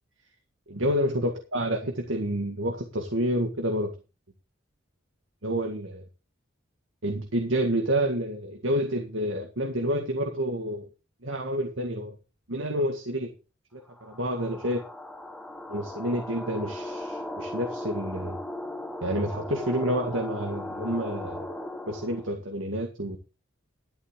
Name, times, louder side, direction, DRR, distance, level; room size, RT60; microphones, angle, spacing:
voice 1, 0.7-3.9 5.4-5.9 7.0-10.9 11.2-12.2 12.5-13.3 13.7-14.9 15.7-18.4 19.0-21.5 21.9-23.2, equal, 75° right, 3 dB, 1.9 m, -29 dB
sound 1, 13.9-22.3, left 1 dB, 5° left, 1.1 m, -37 dB
12.5 x 10.5 x 3.8 m, 0.31 s
head